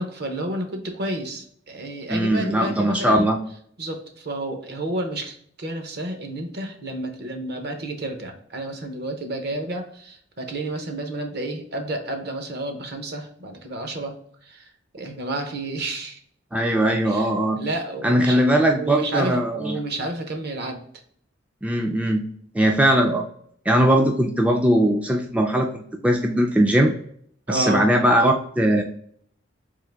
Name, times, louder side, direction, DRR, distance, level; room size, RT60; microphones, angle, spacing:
voice 1, 0.0-3.3 3.8-16.2 17.0-17.3 17.6-18.4 18.7-20.8 27.5-27.9, right 1 dB, 55° right, 5 dB, 0.8 m, -30 dB
voice 2, 2.1-3.4 16.5-17.6 18.0-19.8 21.6-23.2 23.7-26.9 27.5-28.8, right 1 dB, 5° right, 2 dB, 0.3 m, -20 dB
3.7 x 2.9 x 3.3 m, 0.62 s
head